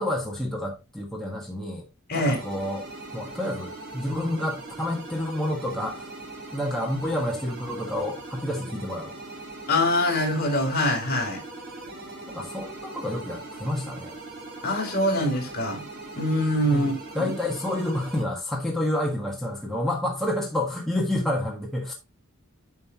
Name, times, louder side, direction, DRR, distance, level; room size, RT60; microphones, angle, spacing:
voice 1, 0.0-1.9 2.1-2.8 3.1-6.1 6.5-9.1 12.3-14.2 16.7-21.9, left 1 dB, ahead, 1.4 m, -29 dB
sound 1, 2.2-18.2, right 2 dB, 50° right, 3.5 m, -40 dB
voice 2, 9.7-11.4 14.6-15.8 16.1-17.3, left 1 dB, 45° left, 3.1 m, -24 dB
9.6 x 5.5 x 2.9 m
head